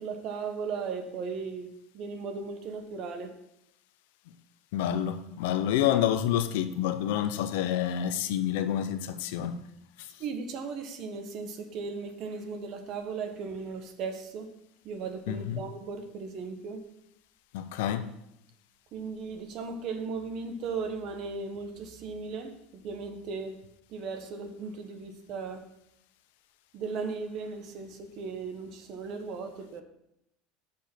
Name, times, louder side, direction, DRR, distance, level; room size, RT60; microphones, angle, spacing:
voice 1, 0.0-1.7 1.9-3.3 10.2-14.5 14.8-16.8 18.9-23.6 23.9-25.6 26.7-29.8, right 4 dB, 45° right, 1.0 m, -37 dB
voice 2, 4.7-9.6 15.3-15.6 17.5-18.1, left 10 dB, 80° left, 0.6 m, -28 dB
6.8 x 5.2 x 5.9 m
cardioid pair, 160°, 0 cm